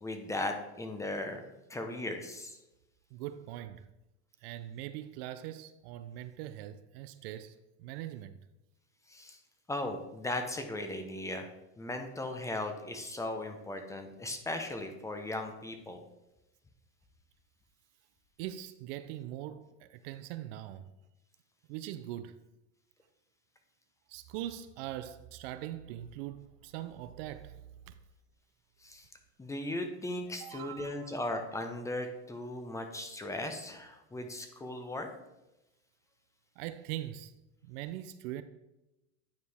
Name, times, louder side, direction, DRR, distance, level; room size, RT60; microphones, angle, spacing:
voice 1, 0.0-2.6 9.1-9.4 9.7-11.5 11.8-16.0 28.8-29.1 29.4-35.1, left 1 dB, 10° left, 0.7 m, -37 dB
voice 2, 3.1-3.9 4.4-8.4 18.4-20.9 21.7-22.4 24.1-28.0 30.4-31.1 36.6-37.3 37.6-38.4, right 12 dB, 60° right, 0.5 m, -42 dB
9.4 x 4.6 x 3.5 m
supercardioid pair, 125°, 33 cm